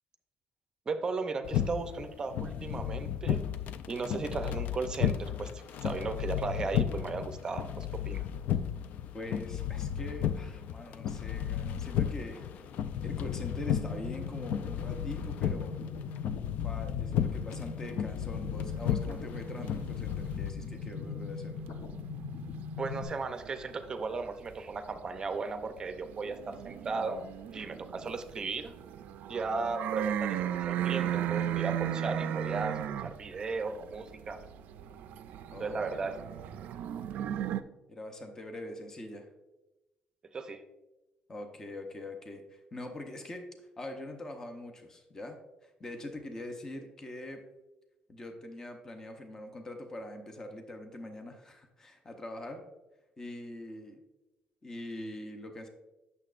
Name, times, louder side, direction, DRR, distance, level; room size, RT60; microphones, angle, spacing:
voice 1, 0.9-3.5 3.9-8.3 22.8-28.7 29.3-34.4 35.6-36.2 40.3-40.6, right 4 dB, 25° right, 8 dB, 0.6 m, -36 dB
sound 1, 1.4-20.5, left 9 dB, 65° left, 0.4 m, -34 dB
voice 2, 9.1-12.7 13.0-15.8 16.6-21.6 35.5-36.1 37.9-39.3 41.3-43.5 43.8-47.4 48.1-52.7 53.2-54.0 54.6-55.7, left 1 dB, 20° left, 5 dB, 0.7 m, -43 dB
sound 2, 13.0-23.0, left 5 dB, 80° left, 0.9 m, -40 dB
sound 3, 18.7-21.6 21.9-24.5 24.9-37.6, right 10 dB, 70° right, 0.3 m, -36 dB
8.7 x 6.8 x 2.5 m, 1.0 s
cardioid pair, 155°, 3 cm